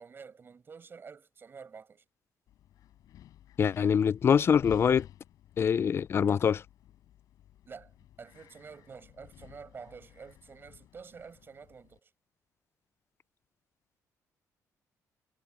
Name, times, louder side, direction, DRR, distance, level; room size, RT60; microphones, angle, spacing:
voice 1, 0.0-2.0 7.6-7.9 8.2-12.1, right 5 dB, 35° right, 6.7 m, -49 dB
Wind, 2.5-12.0, left 12 dB, 75° left, 6.7 m, -53 dB
voice 2, 3.6-5.1 5.6-6.6, left 7 dB, 40° left, 0.4 m, -24 dB
cardioid pair, 115°, 6 cm